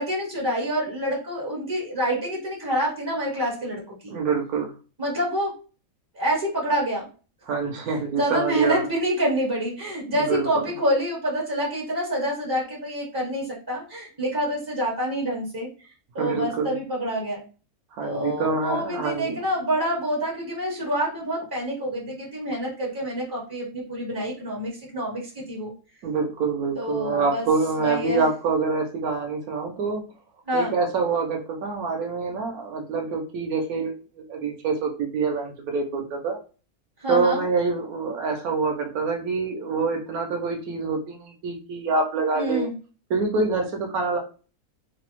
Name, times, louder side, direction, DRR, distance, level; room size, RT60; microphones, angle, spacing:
voice 1, 0.0-4.1 5.0-5.5 6.1-7.1 7.9-15.7 16.1-17.4 18.0-25.7 26.7-27.5 27.8-28.2 30.5-30.7 37.0-37.4 42.4-42.7, equal, 30° right, -3 dB, 0.4 m, -27 dB
voice 2, 4.1-4.7 7.5-8.8 10.1-10.6 16.2-16.7 17.9-19.4 26.0-30.0 30.5-33.9 34.3-36.4 37.1-42.7 43.1-44.2, right 4 dB, 75° right, 2 dB, 1.1 m, -26 dB
3.0 x 2.0 x 2.9 m, 0.36 s
omnidirectional pair, 1.6 m